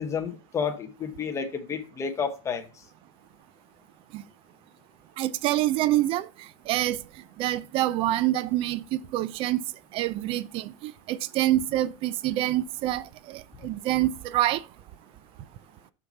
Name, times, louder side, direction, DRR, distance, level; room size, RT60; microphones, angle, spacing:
voice 1, 0.0-2.7, left 6 dB, 15° left, 0.9 m, -31 dB
voice 2, 5.2-6.3 6.7-7.0 7.4-9.6 9.9-14.6, right 14 dB, 30° right, 0.4 m, -26 dB
5.7 x 5.7 x 4.0 m
supercardioid pair, 140°, 17 cm